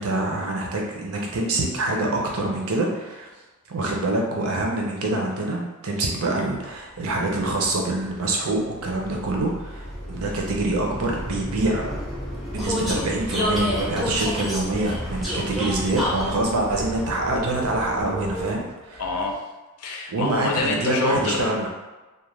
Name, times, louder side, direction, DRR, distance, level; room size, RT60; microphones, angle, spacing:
voice 1, 0.0-3.3 3.7-12.0 12.5-19.0 20.1-21.7, right 2 dB, 70° right, 0 dB, 0.6 m, -25 dB
Vehicle, 6.9-18.8, equal, ahead, 0.5 m, -31 dB
voice 2, 19.0-19.3 19.8-21.5, left 3 dB, 90° left, 1 dB, 0.5 m, -26 dB
2.4 x 2.2 x 3.1 m, 1.1 s
head